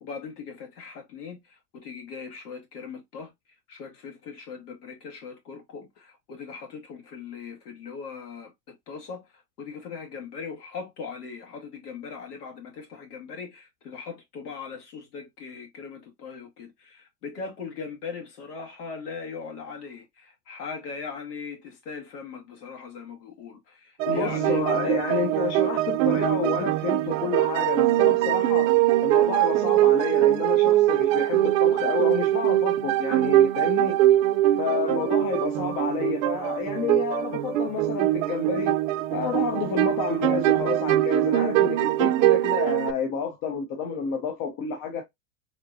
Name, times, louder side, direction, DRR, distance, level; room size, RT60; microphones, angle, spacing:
voice 1, 0.0-3.3 3.7-25.2, left 5 dB, 75° left, 2.0 m, -39 dB
sound 1, 24.0-42.9, right 14 dB, 55° right, 0.6 m, -22 dB
voice 2, 24.1-28.7 29.0-34.0 34.6-38.8 39.1-45.0, left 6 dB, 45° left, 1.0 m, -30 dB
4.2 x 3.1 x 2.7 m
hypercardioid pair, 105°, 46 cm